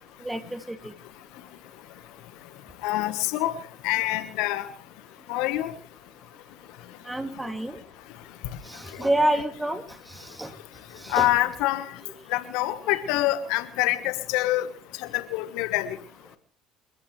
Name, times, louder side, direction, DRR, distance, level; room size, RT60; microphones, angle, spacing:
voice 1, 0.2-0.9 7.1-7.8 8.7-9.8 10.4-10.5 11.0-11.3, right 1 dB, 10° right, 7 dB, 2.6 m, -27 dB
voice 2, 2.8-3.6 3.8-4.7 5.3-5.7 8.4-8.6 8.9-9.1 11.1-12.0 12.3-14.7 15.0-16.0, left 16 dB, 70° left, 12 dB, 1.4 m, -26 dB
28.5 x 14.5 x 3.3 m, 0.42 s
hypercardioid pair, 65°, 0 cm